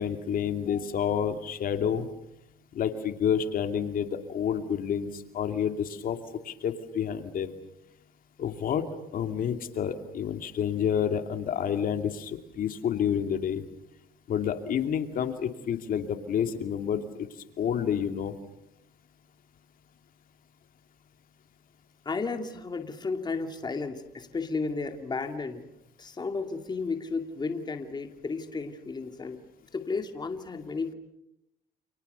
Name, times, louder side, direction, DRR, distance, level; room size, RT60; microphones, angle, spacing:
voice 1, 0.0-2.1 2.7-6.2 6.4-7.5 8.4-13.6 14.3-17.3 17.6-18.3, left 8 dB, 55° left, 7 dB, 2.6 m, -29 dB
voice 2, 22.0-25.7 26.0-29.4 29.7-30.9, left 4 dB, 25° left, 6 dB, 2.5 m, -33 dB
29.5 x 28.5 x 6.9 m, 0.82 s
cardioid pair, 110°, 17 cm